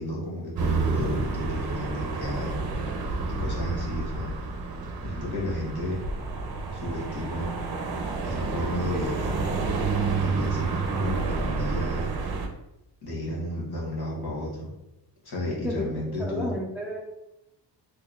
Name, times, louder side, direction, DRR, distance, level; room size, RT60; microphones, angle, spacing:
voice 1, 0.0-2.6 3.4-4.3 5.0-6.0 6.7-7.5 8.2-9.4 10.2-12.1 13.0-14.7 15.2-16.5, left 1 dB, 55° left, -5 dB, 1.5 m, -32 dB
sound 1, 0.6-12.5, right 4 dB, 55° right, 0.6 m, -29 dB
voice 2, 15.6-17.0, left 1 dB, 5° right, -2 dB, 0.5 m, -32 dB
3.7 x 3.1 x 2.5 m, 0.89 s
wide cardioid pair, 115°, 44 cm